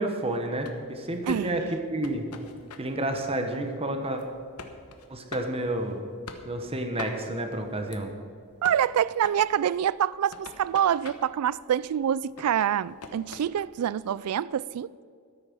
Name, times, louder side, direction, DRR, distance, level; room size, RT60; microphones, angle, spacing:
voice 1, 0.0-1.6 1.9-2.3 2.8-4.2 5.1-6.0 6.4-8.1, right 1 dB, 25° right, 1.2 m, -30 dB
sound 1, 0.6-14.4, left 4 dB, 85° left, 1.1 m, -47 dB
voice 2, 1.3-1.7 8.6-14.9, right 9 dB, 80° right, 0.3 m, -26 dB
12.5 x 8.9 x 6.1 m
head